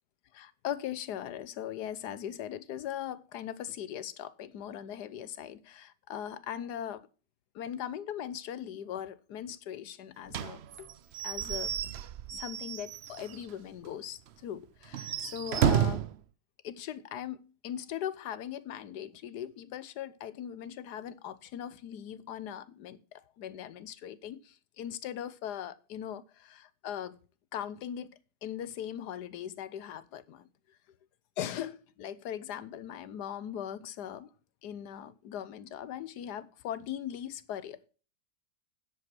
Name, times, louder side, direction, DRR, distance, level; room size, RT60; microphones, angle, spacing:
voice 1, 0.3-7.1 7.5-10.9 11.2-11.7 12.3-16.0 16.6-27.2 27.5-30.5 31.4-34.3 34.6-37.9, left 10 dB, 70° left, 1.3 m, -40 dB
Slam / Squeak / Wood, 10.3-13.5 13.9-14.0 14.3-14.4 14.8-16.2, right 9 dB, 80° right, 0.5 m, -31 dB
10.5 x 7.9 x 6.0 m
omnidirectional pair, 1.9 m